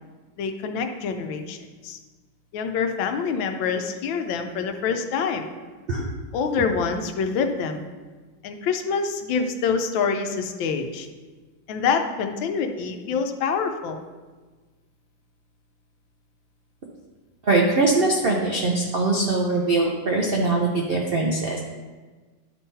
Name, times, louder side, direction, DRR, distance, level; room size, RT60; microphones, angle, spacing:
voice 1, 0.4-1.6 1.8-2.0 2.5-5.5 6.3-7.8 8.4-11.1 11.7-14.0, left 5 dB, 80° left, 6 dB, 1.4 m, -26 dB
voice 2, 17.4-21.6, right 3 dB, 85° right, -1 dB, 0.5 m, -22 dB
11.0 x 3.8 x 4.1 m, 1.3 s
omnidirectional pair, 2.1 m